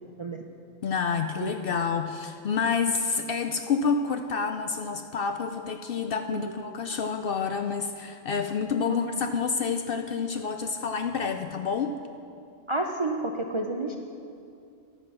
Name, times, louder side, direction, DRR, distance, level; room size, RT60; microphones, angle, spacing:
voice 1, 0.8-12.0, left 5 dB, 60° left, 7 dB, 0.6 m, -28 dB
voice 2, 12.7-14.0, right 2 dB, 40° right, 2 dB, 0.4 m, -30 dB
11.0 x 9.0 x 6.1 m, 2.5 s
omnidirectional pair, 1.3 m